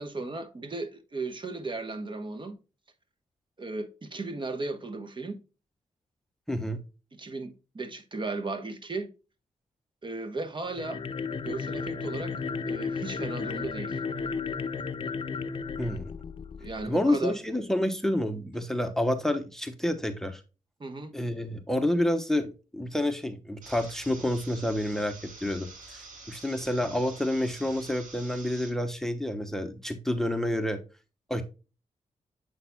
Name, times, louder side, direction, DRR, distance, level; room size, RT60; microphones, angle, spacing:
voice 1, 0.0-2.6 3.6-5.4 7.1-9.1 10.0-11.0 11.4-12.3 12.6-14.0 16.6-17.4 20.8-21.1, right 3 dB, 40° right, 1.1 m, -35 dB
voice 2, 6.5-6.8 15.8-16.1 16.9-20.4 21.1-30.8 31.3-31.4, left 1 dB, 5° left, 0.9 m, -29 dB
sound 1, 10.7-16.9, left 5 dB, 40° left, 0.6 m, -34 dB
sound 2, 23.6-28.7, right 3 dB, 85° right, 3.1 m, -47 dB
8.0 x 5.8 x 2.2 m
cardioid pair, 70°, 13 cm